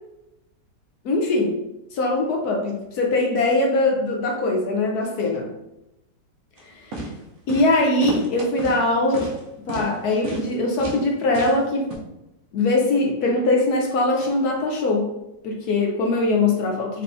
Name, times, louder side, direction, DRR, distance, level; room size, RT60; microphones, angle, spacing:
voice 1, 1.0-1.6 1.9-5.5 6.8-6.9 7.5-9.3 9.7-11.9 12.5-15.1 15.4-17.0, left 2 dB, 70° left, 1 dB, 1.0 m, -21 dB
sound 1, 6.6-6.7 6.9-7.1 7.5-7.7 8.0-8.8 9.1-9.4 9.7-9.9 10.2-10.5 10.8-11.0 11.3-11.6 11.9-12.0, right 2 dB, 55° right, 1.0 m, -31 dB
4.2 x 3.4 x 2.6 m, 0.91 s
omnidirectional pair, 2.0 m